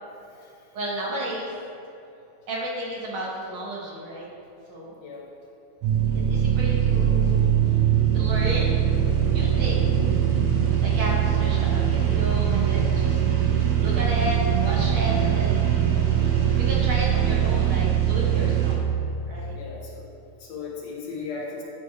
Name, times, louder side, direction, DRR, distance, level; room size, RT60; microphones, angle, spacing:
voice 1, 0.7-1.5 2.5-4.3 4.7-4.9 6.3-7.4 8.1-8.8 9.3-9.9 10.8-13.2 13.8-15.8 16.6-18.8 19.3-19.5, equal, 60° right, -4 dB, 1.4 m, -32 dB
sound 1, 5.8-18.8, right 9 dB, 75° right, 1.1 m, -22 dB
voice 2, 19.5-20.1 20.4-21.6, left 4 dB, 70° left, -2 dB, 1.8 m, -36 dB
9.9 x 3.3 x 4.7 m, 2.8 s
omnidirectional pair, 3.5 m